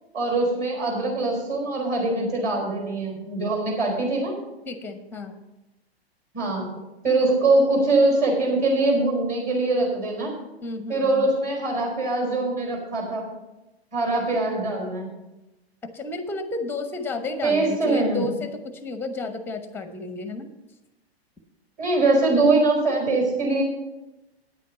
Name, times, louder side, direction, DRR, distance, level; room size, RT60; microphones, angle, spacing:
voice 1, 0.1-4.3 6.3-6.7 7.0-10.3 10.9-13.3 13.9-15.1 17.4-18.2 21.8-23.6, right 2 dB, 25° right, 1 dB, 4.4 m, -22 dB
voice 2, 4.7-5.4 10.6-11.3 15.8-20.5, left 3 dB, 5° left, 9 dB, 0.9 m, -32 dB
9.7 x 8.3 x 5.7 m, 1.0 s
hypercardioid pair, 115°, 32 cm